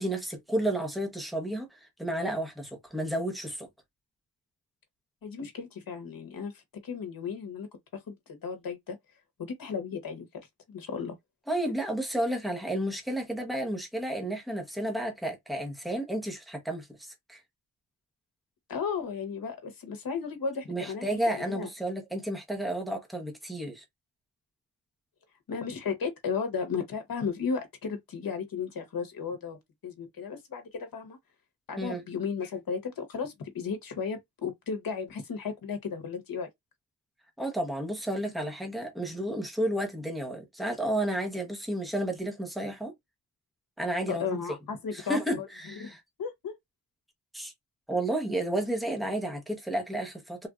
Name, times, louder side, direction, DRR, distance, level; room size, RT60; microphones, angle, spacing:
voice 1, 0.0-3.7 11.5-17.4 20.7-23.8 31.8-32.0 37.4-42.9 43.8-44.4 44.9-46.0 47.3-47.5 47.9-50.5, right 1 dB, ahead, 0.9 m, -32 dB
voice 2, 5.2-7.7 8.1-9.0 9.4-10.3 10.7-11.2 18.7-21.7 25.5-29.6 29.8-31.2 31.7-36.5 44.1-45.5 45.8-46.5, left 6 dB, 65° left, 1.0 m, -34 dB
3.4 x 2.5 x 2.4 m
wide cardioid pair, 90°, 38 cm